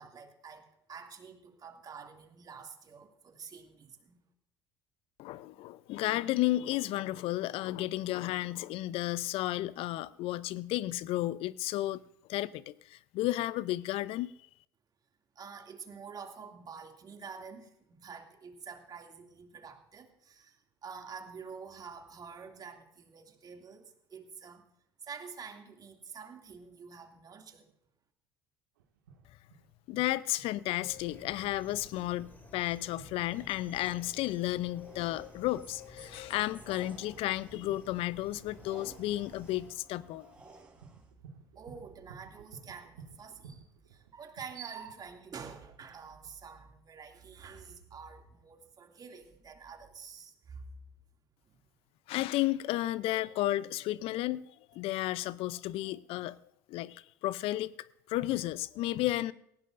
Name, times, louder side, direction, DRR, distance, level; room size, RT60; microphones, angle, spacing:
voice 1, 0.0-4.2 15.3-24.6 25.0-27.7 41.5-50.7 51.5-51.6, right 6 dB, 35° right, 2.6 m, -48 dB
voice 2, 5.2-12.0 12.3-14.3 29.9-40.3 52.1-56.4 56.7-57.7 58.1-59.3, left 16 dB, 60° left, 0.6 m, -33 dB
sound 1, 28.8-46.3, right 5 dB, 85° right, 2.0 m, -56 dB
sound 2, 30.9-39.7, left 2 dB, 15° left, 2.7 m, -54 dB
sound 3, 33.2-41.1, right 3 dB, 15° right, 6.4 m, -57 dB
18.5 x 16.5 x 2.6 m
hypercardioid pair, 70°, 11 cm